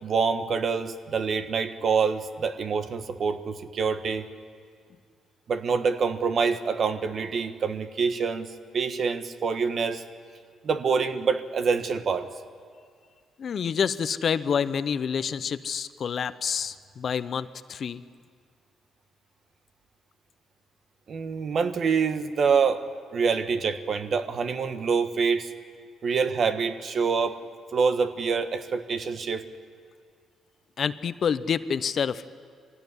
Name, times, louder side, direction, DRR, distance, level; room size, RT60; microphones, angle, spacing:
voice 1, 0.0-4.2 5.5-8.5 8.7-10.0 10.6-12.3 21.1-22.8 23.1-25.5 26.0-27.4 27.7-29.5, right 5 dB, 55° right, 9 dB, 1.3 m, -26 dB
voice 2, 13.4-18.0 30.8-32.3, left 7 dB, 55° left, 14 dB, 0.8 m, -28 dB
23.0 x 16.5 x 9.8 m, 2.1 s
cardioid pair, 90°, 0 cm